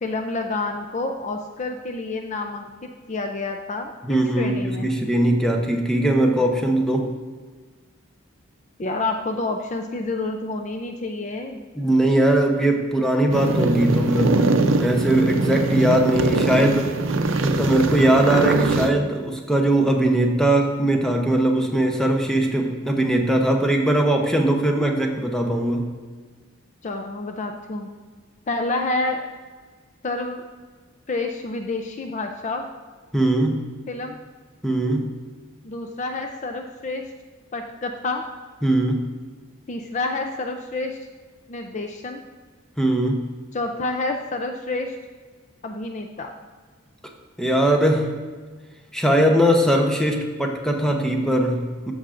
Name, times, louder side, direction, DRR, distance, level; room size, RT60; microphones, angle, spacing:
voice 1, 0.0-4.9 8.8-11.6 26.8-27.9 28.5-29.3 30.0-30.4 31.1-32.6 33.9-34.2 35.6-37.1 37.5-38.3 39.7-41.1 41.5-42.2 43.5-45.0 45.6-46.4, left 2 dB, 35° left, 5 dB, 0.4 m, -28 dB
voice 2, 4.0-7.1 11.8-16.9 17.4-25.8 33.1-33.6 34.6-35.1 38.6-39.1 42.8-43.3 47.4-48.1 48.9-51.9, right 1 dB, 5° left, 2 dB, 0.8 m, -20 dB
sound 1, 13.3-18.9, right 3 dB, 75° right, 0.6 m, -22 dB
13.0 x 6.2 x 2.5 m, 1.5 s
head